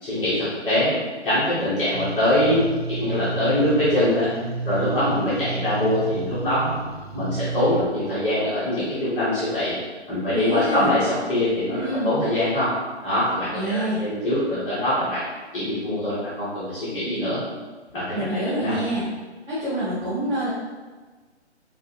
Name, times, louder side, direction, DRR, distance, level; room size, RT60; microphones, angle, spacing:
voice 1, 0.0-1.0 1.2-4.3 4.6-6.7 7.1-9.7 10.1-12.7 13.0-15.2 15.5-17.4 17.9-18.1 18.4-18.7, left 1 dB, 10° left, -15 dB, 0.9 m, -23 dB
sound 1, 1.9-7.8, right 4 dB, 60° right, 0.9 m, -31 dB
voice 2, 10.3-10.9 11.7-12.1 13.5-14.0 18.1-19.0 19.5-20.5, right 1 dB, 25° right, -14 dB, 1.4 m, -26 dB
5.0 x 2.6 x 2.8 m, 1.3 s
figure-of-eight pair, 135°, 35 cm